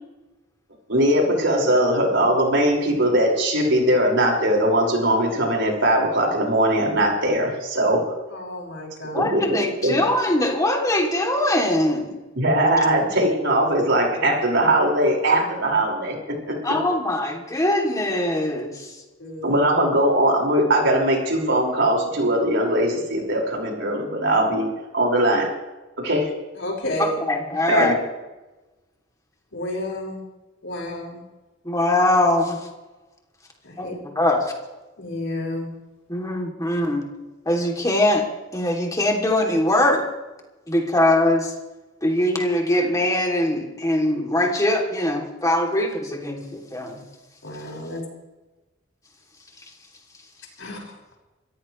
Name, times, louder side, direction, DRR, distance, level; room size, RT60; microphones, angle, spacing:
voice 1, 0.9-8.0 9.2-10.0 12.4-16.6 19.4-24.7 24.9-25.5 26.0-26.3 27.7-27.9, right 1 dB, 70° right, -1 dB, 5.4 m, -20 dB
voice 2, 8.3-9.3 19.2-19.6 26.6-27.2 29.5-30.2 30.6-31.2 33.6-34.0 35.0-35.7 47.4-48.0 50.6-50.8, left 1 dB, 75° left, -1 dB, 5.8 m, -31 dB
voice 3, 9.1-12.2 16.6-18.9 27.0-28.0 31.6-32.6 33.8-33.9 34.1-34.5 36.1-37.1 37.5-38.2 38.5-40.0 40.7-41.5 42.0-47.0, left 1 dB, 20° left, 1 dB, 3.0 m, -22 dB
26.5 x 15.0 x 3.3 m, 1.1 s
head